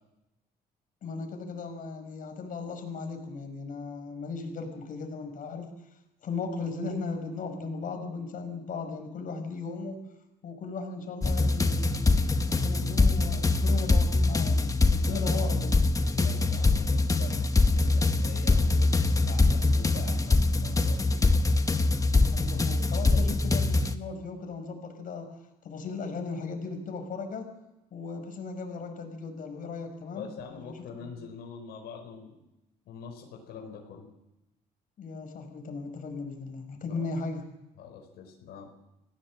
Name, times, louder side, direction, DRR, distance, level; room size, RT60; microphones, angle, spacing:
voice 1, 1.0-5.7 6.2-10.0 10.4-16.1 22.1-25.3 25.6-27.5 27.9-31.2 35.0-37.4, left 4 dB, 55° left, 5 dB, 5.8 m, -37 dB
sound 1, 11.2-24.0, left 3 dB, 20° left, 1.3 m, -24 dB
voice 2, 14.9-15.4 16.1-21.3 22.9-23.2 30.1-32.4 32.8-34.1 36.9-37.1 37.8-38.7, left 6 dB, 75° left, 2 dB, 4.7 m, -44 dB
27.5 x 17.5 x 7.6 m, 0.95 s
cardioid pair, 110°, 17 cm